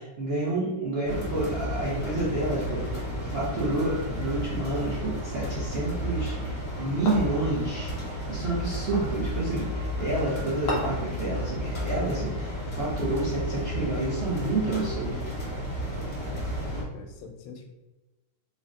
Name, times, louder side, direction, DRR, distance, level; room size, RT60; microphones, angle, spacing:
voice 1, 0.0-15.2, right 2 dB, 80° right, -9 dB, 0.5 m, -29 dB
sound 1, 1.0-16.8, equal, 35° left, 1.3 m, -32 dB
sound 2, 7.1-7.5 8.9-9.2 10.7-11.1, equal, 65° left, 0.8 m, -32 dB
voice 2, 16.6-17.7, left 4 dB, 80° left, 4 dB, 1.4 m, -43 dB
3.8 x 2.1 x 3.7 m, 1.1 s
omnidirectional pair, 2.4 m